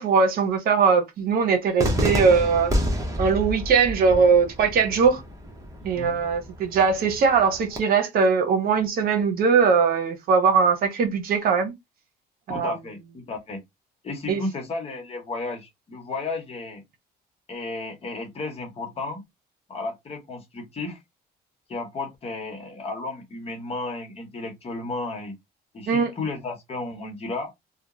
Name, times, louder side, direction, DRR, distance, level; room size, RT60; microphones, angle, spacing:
voice 1, 0.0-2.7 3.2-5.2 5.8-11.7 12.5-12.7 14.3-14.4 25.9-26.1, right 5 dB, 60° right, 0.8 m, -20 dB
Cheering / Fireworks, 1.8-7.8, equal, 20° right, 0.9 m, -29 dB
voice 2, 5.8-6.2 12.5-13.6 14.0-16.8 17.5-19.2 19.7-21.0 21.7-25.3 25.7-27.5, left 3 dB, 35° left, 1.0 m, -33 dB
2.9 x 2.2 x 2.5 m
cardioid pair, 110°, 17 cm